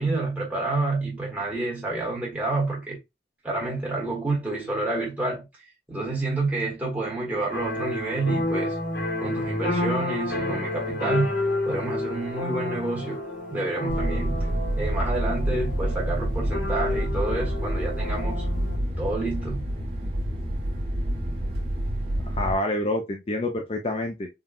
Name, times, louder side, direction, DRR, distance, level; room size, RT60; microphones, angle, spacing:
voice 1, 0.0-3.0 3.4-5.5 5.9-8.8 9.2-11.4 11.6-13.2 13.5-14.5 14.8-18.4 19.0-19.6, right 2 dB, 10° right, 1.1 m, -29 dB
sound 1, 7.5-18.8, left 1 dB, 90° left, 1.8 m, -30 dB
sound 2, 13.9-22.5, right 1 dB, 35° right, 1.3 m, -28 dB
voice 2, 22.2-24.3, left 1 dB, 35° left, 0.4 m, -27 dB
3.6 x 2.3 x 2.2 m
head